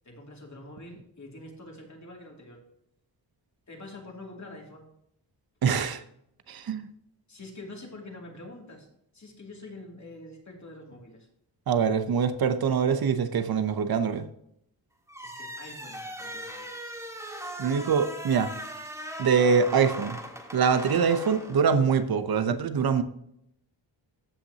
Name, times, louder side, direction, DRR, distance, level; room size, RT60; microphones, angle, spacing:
voice 1, 0.0-2.6 3.7-4.9 7.3-8.9 9.1-11.3 15.2-16.7, left 2 dB, 40° left, -1 dB, 2.6 m, -45 dB
voice 2, 5.6-6.0 6.5-6.9 11.7-14.3 17.6-18.5 19.2-20.2 20.5-23.0, right 6 dB, 55° right, 10 dB, 0.8 m, -24 dB
sound 1, 15.1-22.1, equal, 5° right, 1.7 m, -39 dB
15.5 x 5.9 x 2.9 m, 0.74 s
wide cardioid pair, 95°, 43 cm